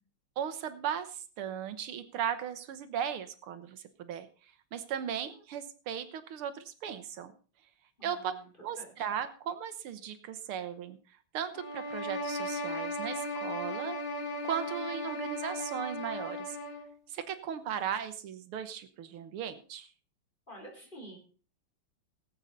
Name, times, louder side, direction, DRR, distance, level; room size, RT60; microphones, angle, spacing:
voice 1, 0.4-4.3 4.7-7.3 8.0-8.3 8.6-11.0 11.3-14.0 14.4-16.6 17.1-19.9, right 8 dB, 80° right, 11 dB, 1.9 m, -37 dB
voice 2, 8.0-8.5 8.8-9.1 20.5-21.2, right 1 dB, 20° left, 0 dB, 3.9 m, -49 dB
sound 1, 11.5-16.9, left 1 dB, 60° left, 2.3 m, -36 dB
19.0 x 7.9 x 4.0 m, 0.40 s
omnidirectional pair, 2.4 m